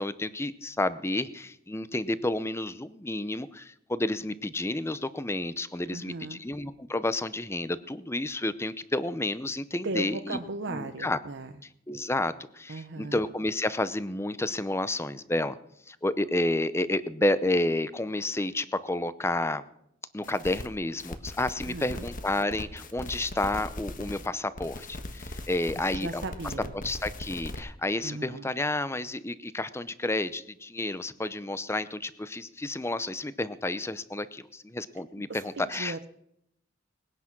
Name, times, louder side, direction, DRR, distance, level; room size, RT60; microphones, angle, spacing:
voice 1, 0.0-10.4 10.7-11.2 11.9-15.6 15.9-19.6 20.1-26.2 26.8-36.1, left 2 dB, 15° left, 15 dB, 0.7 m, -30 dB
voice 2, 5.9-6.4 9.8-11.5 12.7-13.2 21.6-22.1 25.8-26.8 28.0-28.5 35.3-36.0, right 2 dB, 65° right, 6 dB, 0.9 m, -37 dB
sound 1, 20.2-20.7 21.0-24.3 24.6-27.6, left 1 dB, 45° left, 1.4 m, -40 dB
20.0 x 9.9 x 6.0 m, 0.75 s
head